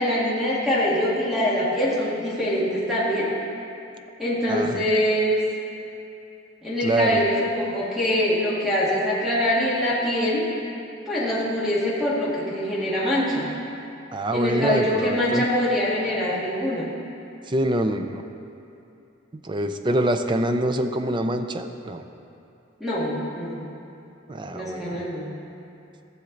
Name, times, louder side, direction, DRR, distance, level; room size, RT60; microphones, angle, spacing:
voice 1, 0.0-3.3 4.2-5.4 6.6-10.5 11.1-13.5 14.3-16.9 22.8-23.7 24.5-25.3, equal, ahead, -8 dB, 1.8 m, -24 dB
voice 2, 4.5-4.8 6.8-7.2 14.1-15.4 17.5-18.2 19.3-22.0 24.3-25.0, right 1 dB, 25° right, 7 dB, 0.5 m, -25 dB
15.0 x 7.1 x 3.9 m, 2.8 s
head